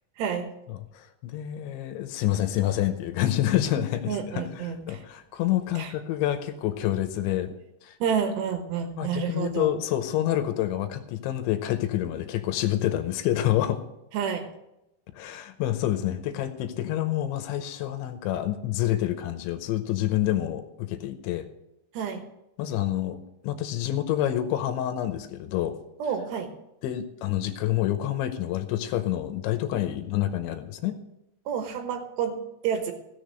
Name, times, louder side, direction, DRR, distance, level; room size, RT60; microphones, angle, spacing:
voice 1, 0.2-0.5 4.1-5.0 5.8-5.9 8.0-9.7 14.1-14.5 21.9-22.3 26.0-26.5 31.5-32.9, right 7 dB, 70° right, 6 dB, 3.0 m, -29 dB
voice 2, 0.9-4.4 4.9-7.5 7.8-7.9 9.0-13.8 15.1-21.5 22.6-23.2 23.4-25.8 26.8-31.0, left 13 dB, 80° left, 8 dB, 3.0 m, -27 dB
16.0 x 6.8 x 6.3 m, 0.89 s
omnidirectional pair, 5.5 m